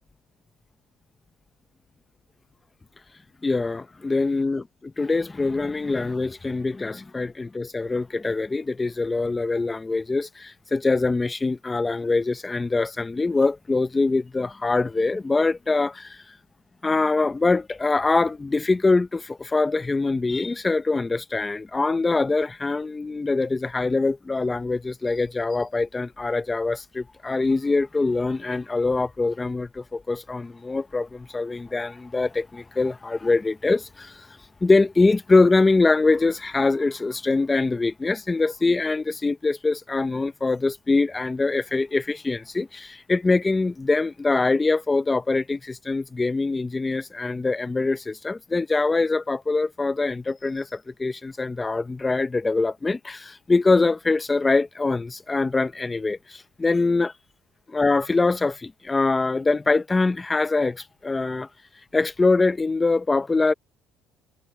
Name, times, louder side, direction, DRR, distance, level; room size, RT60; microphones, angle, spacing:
voice 1, 3.4-16.2 16.8-34.3 34.6-57.1 57.7-61.5 61.9-63.5, left 3 dB, 15° left, 0.5 m, -23 dB
cardioid pair, 150°, 0 cm